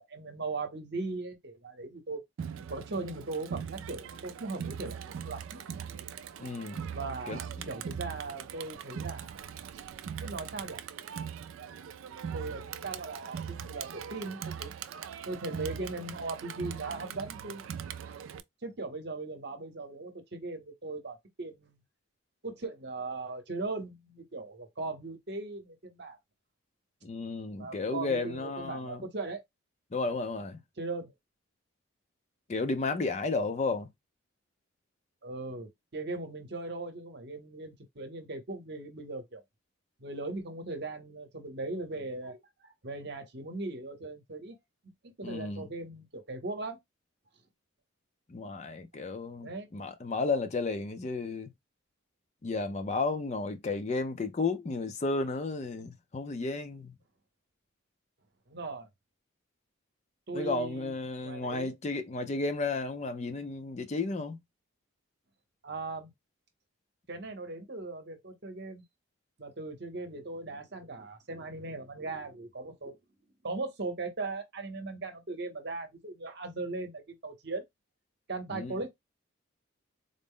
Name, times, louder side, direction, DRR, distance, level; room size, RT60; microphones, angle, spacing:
voice 1, 0.0-2.2 2.7-5.6 6.9-9.5 10.2-10.8 12.3-14.7 15.3-17.7 18.6-21.8 22.4-26.2 27.6-29.4 30.8-31.1 35.2-39.4 40.0-44.6 45.2-46.8 49.4-49.7 58.5-58.9 60.3-61.0 61.2-61.7 65.6-66.1 67.1-68.8 69.4-73.0 73.4-77.6 78.3-78.9, right 3 dB, 55° right, 0.8 m, -39 dB
Crowd, 2.4-18.4, right 8 dB, 75° right, 0.3 m, -41 dB
voice 2, 6.4-6.8 7.3-7.4 27.0-29.0 29.9-30.6 32.5-33.9 45.2-45.7 48.3-51.5 52.4-56.9 60.3-64.4 78.5-78.7, left 3 dB, 35° left, 0.4 m, -33 dB
3.9 x 2.0 x 3.6 m
head